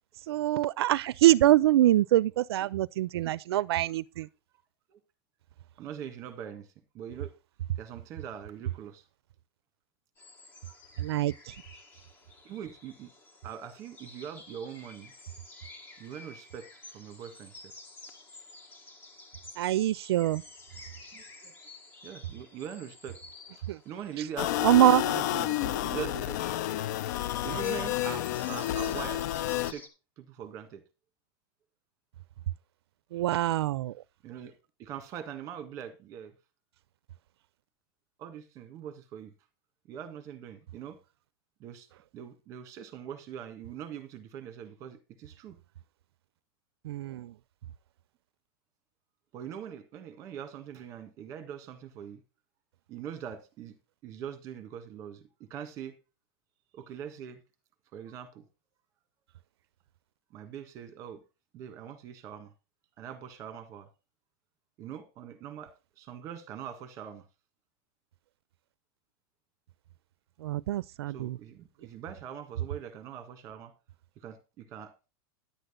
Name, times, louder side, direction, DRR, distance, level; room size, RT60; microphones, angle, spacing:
voice 1, 0.3-4.3 11.0-11.5 19.6-20.4 23.7-23.8 24.6-25.0 33.1-33.9 46.8-47.3 70.4-71.4, right 14 dB, 85° right, 0.4 m, -24 dB
voice 2, 5.8-6.7 6.9-7.3 7.8-9.0 12.4-13.1 13.4-15.1 16.0-17.7 21.0-21.5 22.0-23.2 23.9-24.7 25.0-26.4 27.4-29.3 29.5-29.9 30.2-30.8 34.2-36.3 38.2-39.3 39.9-41.0 41.6-41.9 42.1-45.6 49.3-52.2 52.9-53.7 54.0-55.2 55.5-56.0 56.7-57.4 57.9-58.4 60.3-61.2 61.5-62.5 63.0-63.9 64.8-67.3 71.1-73.7 74.2-74.9, right 9 dB, 25° right, 1.7 m, -42 dB
sound 1, 10.2-29.9, left 2 dB, 15° left, 1.3 m, -52 dB
sound 2, 24.4-29.7, left 14 dB, 45° left, 0.4 m, -30 dB
10.5 x 8.0 x 3.7 m
supercardioid pair, 175°, 13 cm